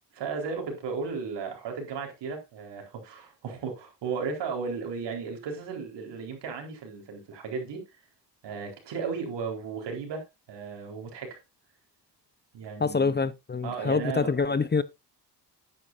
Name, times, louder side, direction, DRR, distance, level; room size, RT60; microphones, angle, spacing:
voice 1, 0.1-8.0 8.4-11.4 12.5-13.2 13.6-14.4, right 5 dB, 80° right, 4.2 m, -35 dB
voice 2, 12.8-14.8, left 4 dB, 25° left, 0.7 m, -26 dB
11.0 x 10.0 x 2.6 m
cardioid pair, 70°, 42 cm